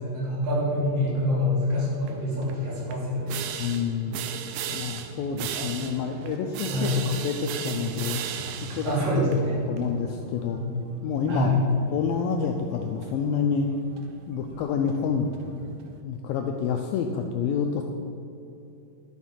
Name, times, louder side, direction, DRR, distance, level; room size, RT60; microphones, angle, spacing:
voice 1, 0.0-3.4 5.4-5.9 6.7-7.1 7.6-8.0 8.6-9.6 10.4-10.7 11.3-11.6, left 1 dB, 60° right, -6 dB, 4.6 m, -27 dB
sound 1, 2.1-16.0, right 8 dB, 80° right, 2.0 m, -38 dB
voice 2, 3.6-4.2 4.7-8.2 8.7-8.9 9.3-9.4 9.7-10.6 11.0-11.5 11.9-13.7 14.3-15.3 16.0-17.8, left 6 dB, 90° left, 3 dB, 2.1 m, -28 dB
12.0 x 7.1 x 5.7 m, 2.8 s
omnidirectional pair, 4.7 m